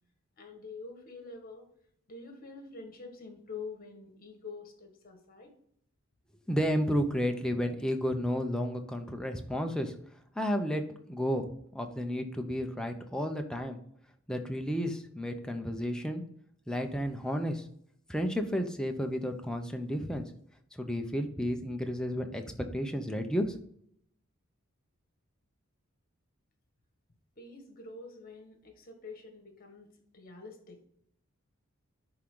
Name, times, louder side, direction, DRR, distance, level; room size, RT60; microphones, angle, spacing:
voice 1, 0.4-1.7 2.1-5.5 27.4-30.8, left 4 dB, 45° left, 4 dB, 1.6 m, -46 dB
voice 2, 6.5-9.9 10.4-10.8 11.1-11.5 11.7-13.8 14.3-16.2 16.7-17.6 18.1-20.3 20.7-22.4 22.7-23.5, equal, 5° left, 4 dB, 0.8 m, -32 dB
10.5 x 3.8 x 3.8 m, 0.67 s
head